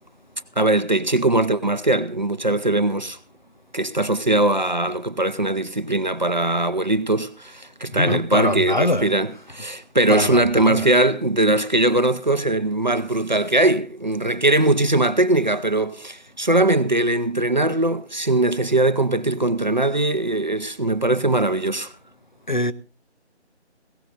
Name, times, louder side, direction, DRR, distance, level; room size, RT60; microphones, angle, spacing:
voice 1, 0.6-3.2 3.7-21.9, right 2 dB, 40° right, 0.6 m, -20 dB
voice 2, 7.9-9.6 10.1-10.9 22.5-22.7, left 1 dB, 45° left, 0.6 m, -24 dB
18.5 x 17.0 x 2.6 m
figure-of-eight pair, 180°, 35 cm